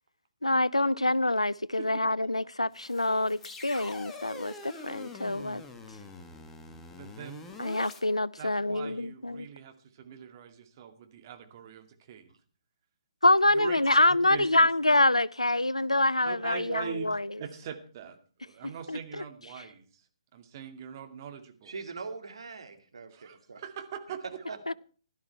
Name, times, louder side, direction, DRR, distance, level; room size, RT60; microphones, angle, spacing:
voice 1, 0.4-5.6 7.6-9.5 13.2-17.2 18.9-19.0 24.7-24.8, left 2 dB, 85° left, 0.5 m, -26 dB
sound 1, 2.7-8.0, left 3 dB, 10° left, 1.6 m, -45 dB
voice 2, 6.9-7.5 8.4-12.3 13.5-13.8 14.1-14.7 16.2-20.1 20.3-21.7 23.1-24.2, right 8 dB, 35° right, 2.2 m, -42 dB
voice 3, 21.6-23.6 24.5-24.6, right 4 dB, 60° right, 2.6 m, -42 dB
16.5 x 12.5 x 4.6 m
figure-of-eight pair, 130°, 3 cm